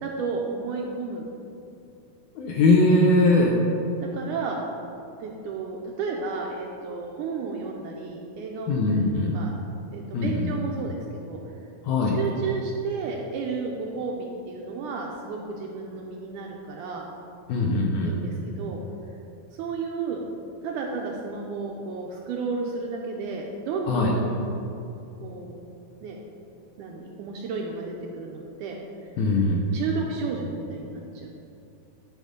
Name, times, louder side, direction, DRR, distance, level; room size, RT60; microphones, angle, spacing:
voice 1, 0.0-1.3 4.0-4.6 5.2-8.8 9.3-9.5 9.9-11.4 12.1-17.1 18.0-18.8 19.5-20.2 20.6-24.4 25.2-25.5 26.0-26.2 26.8-28.8 29.7-31.3, right 4 dB, 80° right, 0 dB, 1.9 m, -32 dB
voice 2, 2.4-3.5 8.7-9.3 10.1-10.5 11.8-12.2 17.5-18.1 23.9-24.1 29.2-29.8, left 2 dB, 75° left, -1 dB, 1.8 m, -21 dB
10.5 x 4.3 x 5.2 m, 2.7 s
omnidirectional pair, 4.1 m